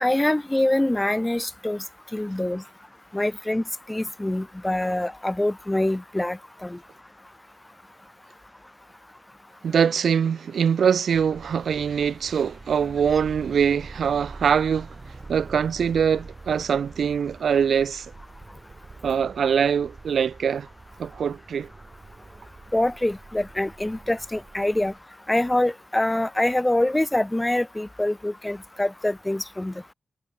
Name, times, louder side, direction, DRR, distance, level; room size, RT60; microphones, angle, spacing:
voice 1, 0.0-1.8 2.1-2.6 3.1-6.8 22.7-24.9 25.3-29.9, left 1 dB, 15° left, 0.5 m, -25 dB
voice 2, 9.6-14.9 15.3-18.1 19.0-20.7 21.0-21.7, right 7 dB, 80° right, 0.7 m, -23 dB
sound 1, 11.1-25.0, right 3 dB, 35° right, 2.7 m, -44 dB
cardioid pair, 70°, 0 cm